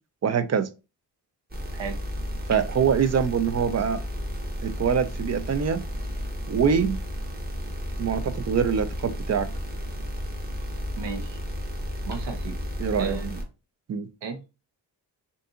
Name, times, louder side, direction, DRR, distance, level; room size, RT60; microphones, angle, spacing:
voice 1, 0.2-0.7 2.5-4.0 4.6-5.8 6.5-7.0 8.0-9.5 12.8-13.2 13.9-14.1, right 7 dB, 40° right, 0.4 m, -24 dB
sound 1, 1.5-13.4, equal, 20° right, 0.8 m, -33 dB
voice 2, 11.0-11.4 12.1-12.5 13.0-13.4 14.2-14.4, right 5 dB, 75° right, 0.8 m, -34 dB
2.6 x 2.6 x 2.3 m
cardioid pair, 65°, 44 cm